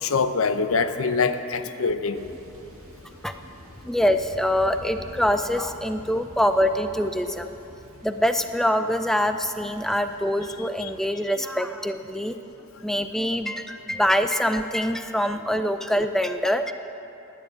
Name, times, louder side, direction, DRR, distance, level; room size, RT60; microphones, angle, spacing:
voice 1, 0.0-2.2 10.8-10.9, left 4 dB, 90° left, 10 dB, 0.7 m, -24 dB
Thunder, 2.1-11.0, equal, 85° right, 1.8 m, -47 dB
voice 2, 3.8-7.5 8.0-12.3 12.8-16.7, equal, ahead, 8 dB, 0.4 m, -24 dB
11.0 x 10.0 x 8.3 m, 2.9 s
head